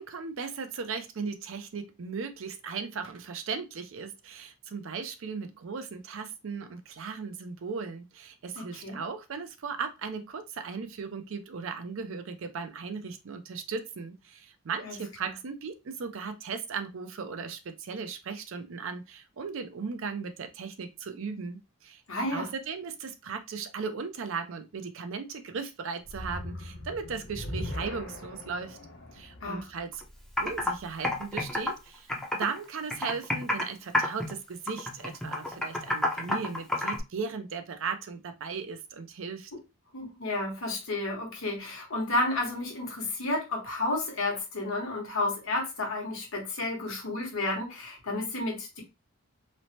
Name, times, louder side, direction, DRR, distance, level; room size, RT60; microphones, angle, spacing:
voice 1, 0.0-22.0 22.3-28.8 29.1-30.0 30.4-39.5, right 5 dB, 60° right, 0.4 m, -37 dB
voice 2, 8.5-9.0 14.8-15.3 22.1-22.5 29.4-29.7 39.9-48.8, left 2 dB, 65° left, 1.1 m, -32 dB
sound 1, 26.0-31.3, left 1 dB, 50° left, 0.6 m, -40 dB
Computer keyboard, 29.9-30.0 30.4-30.7 31.0-32.6 32.9-33.7 33.9-34.3 34.7-37.0, left 1 dB, 5° left, 0.5 m, -29 dB
3.1 x 2.0 x 2.7 m
head